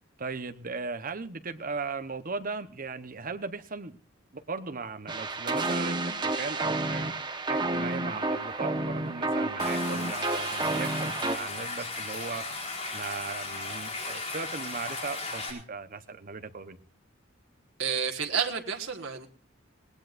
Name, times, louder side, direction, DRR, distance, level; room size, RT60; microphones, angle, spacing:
voice 1, 0.2-4.0 4.3-7.1 7.5-12.7 12.9-16.8, right 4 dB, 45° right, 9 dB, 1.1 m, -37 dB
sound 1, 5.1-11.4, right 2 dB, 25° right, 1.3 m, -30 dB
Stream, 9.6-15.5, left 3 dB, 35° left, 4.2 m, -36 dB
voice 2, 17.8-19.3, right 7 dB, 85° right, 2 dB, 1.7 m, -30 dB
20.5 x 19.0 x 2.6 m, 0.37 s
head